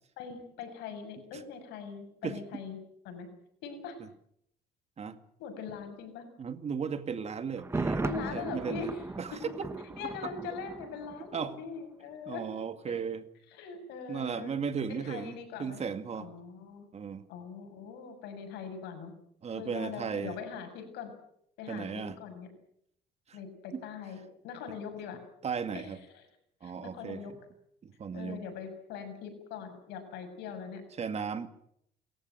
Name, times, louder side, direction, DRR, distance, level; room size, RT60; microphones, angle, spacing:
voice 1, 0.2-2.8 3.0-3.3 3.6-4.0 5.4-6.2 8.0-9.0 9.3-9.4 9.9-12.4 13.5-14.5 14.9-15.8 16.2-16.9 17.3-19.1 19.5-21.1 21.6-22.5 23.3-25.2 25.7-26.3 26.6-27.3 28.1-30.8, left 6 dB, 90° left, 7 dB, 6.8 m, -41 dB
voice 2, 6.4-8.9 9.2-9.7 11.3-11.6 12.3-13.2 14.1-16.3 16.9-17.2 19.4-20.4 21.7-22.2 23.3-23.4 23.7-23.8 25.4-26.0 26.6-27.4 27.8-28.4 31.0-31.5, right 6 dB, 40° right, 10 dB, 2.1 m, -36 dB
Thunder, 7.6-11.5 11.8-11.9, right 2 dB, 15° right, 1.3 m, -37 dB
29.5 x 14.5 x 9.2 m, 0.72 s
cardioid pair, 110°, 17 cm